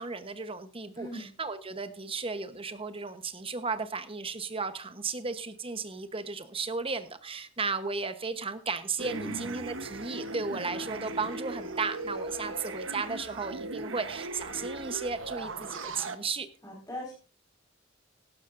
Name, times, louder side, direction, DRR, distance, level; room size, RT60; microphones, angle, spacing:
voice 1, 0.0-16.5, right 4 dB, 30° right, 10 dB, 1.0 m, -35 dB
voice 2, 1.0-1.3 9.1-9.4 16.6-17.1, equal, 15° left, -6 dB, 5.0 m, -39 dB
sound 1, 9.0-16.2, right 3 dB, 90° right, 1.1 m, -38 dB
17.5 x 12.5 x 2.6 m, 0.35 s
head